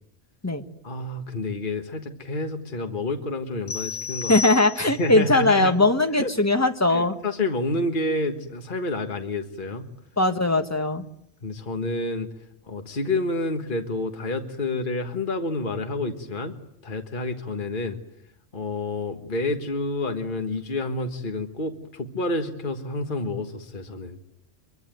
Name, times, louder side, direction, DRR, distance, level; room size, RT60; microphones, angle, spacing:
voice 1, 0.8-4.3 4.8-5.7 6.2-6.3 6.9-9.9 11.4-12.3 12.6-16.5 16.8-18.0 18.5-24.2, left 2 dB, 45° left, 5 dB, 1.8 m, -29 dB
sound 1, 3.7-5.2, left 6 dB, 70° left, 2.8 m, -32 dB
voice 2, 4.3-7.2 10.2-11.0, left 2 dB, 15° left, 6 dB, 1.6 m, -20 dB
24.0 x 23.5 x 9.2 m, 0.73 s
omnidirectional pair, 1.2 m